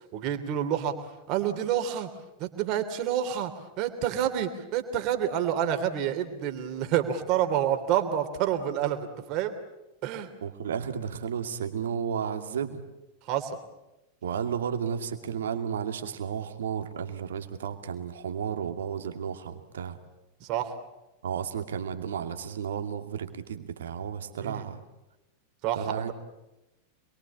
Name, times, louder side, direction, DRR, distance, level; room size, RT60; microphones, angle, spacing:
voice 1, 0.1-0.9 1.3-2.1 2.4-3.5 3.8-9.5 10.0-10.3 13.3-13.5 20.4-20.7 24.4-24.7 25.6-26.1, right 10 dB, 40° right, 7 dB, 3.2 m, -28 dB
voice 2, 10.4-12.8 14.2-20.0 21.2-24.8 25.8-26.1, right 7 dB, 65° right, 7 dB, 2.4 m, -33 dB
27.0 x 22.5 x 8.6 m, 0.98 s
figure-of-eight pair, 90°, 0 cm